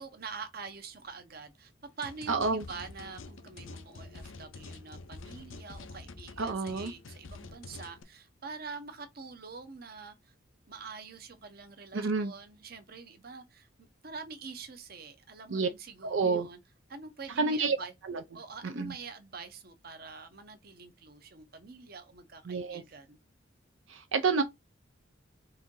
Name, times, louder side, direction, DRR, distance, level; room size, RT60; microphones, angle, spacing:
voice 1, 0.0-1.7 2.0-10.3 10.7-16.6 16.9-17.9 18.3-23.2, right 4 dB, 50° right, 0.9 m, -45 dB
sound 1, 2.0-8.0, left 3 dB, 85° left, 0.7 m, -47 dB
voice 2, 2.3-2.6 6.4-6.9 11.9-12.3 15.5-15.7 16.0-16.5 17.4-17.8 18.0-18.2 18.6-18.9 22.5-22.8 23.9-24.4, right 4 dB, 75° right, 0.6 m, -29 dB
4.3 x 2.7 x 3.7 m
head